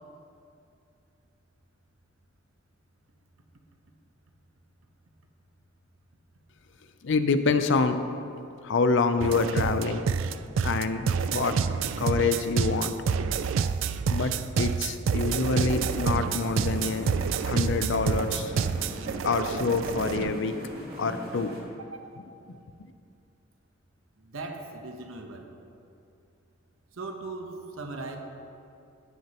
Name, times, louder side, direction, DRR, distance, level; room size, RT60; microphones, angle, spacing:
voice 1, 7.0-8.0 8.6-10.1 10.6-11.6 12.0-12.9 14.1-17.1 17.4-18.5 19.2-20.5 21.0-21.5, left 4 dB, 65° left, 9 dB, 0.5 m, -26 dB
sound 1, 9.2-20.3, right 6 dB, 70° right, 0.3 m, -28 dB
sound 2, 15.5-21.6, equal, 50° right, 1.7 m, -40 dB
voice 2, 24.2-25.5 27.0-28.2, right 3 dB, 85° right, 4 dB, 1.0 m, -39 dB
17.0 x 6.3 x 3.0 m, 2.6 s
head